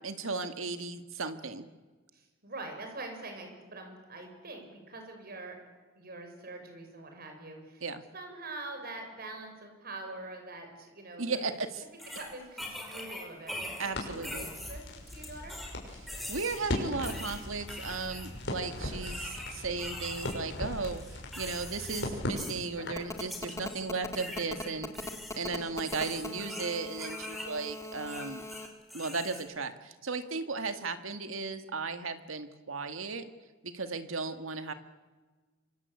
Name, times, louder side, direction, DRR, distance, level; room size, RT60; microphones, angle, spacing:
voice 1, 0.0-1.7 7.8-8.0 11.2-11.8 13.8-14.5 16.3-24.9 25.4-28.4 28.9-33.3 33.6-34.7, right 4 dB, 90° right, 9 dB, 2.0 m, -35 dB
voice 2, 2.1-5.6 6.0-7.8 8.1-11.4 11.9-14.8 15.1-15.6, right 2 dB, 50° right, 4 dB, 6.4 m, -44 dB
sound 1, 11.3-11.4 12.0-13.9 14.2-15.7 16.1-16.6 17.0-18.3 19.0-20.4 20.8-22.1 22.4-22.7 23.2-23.9 24.1-27.5 28.0-29.4, left 1 dB, ahead, 5.3 m, -42 dB
Crackle, 13.9-23.1, left 1 dB, 60° left, 6.4 m, -39 dB
Telephone, 23.0-28.7, left 2 dB, 15° left, 2.2 m, -40 dB
26.5 x 25.0 x 8.4 m, 1.3 s
head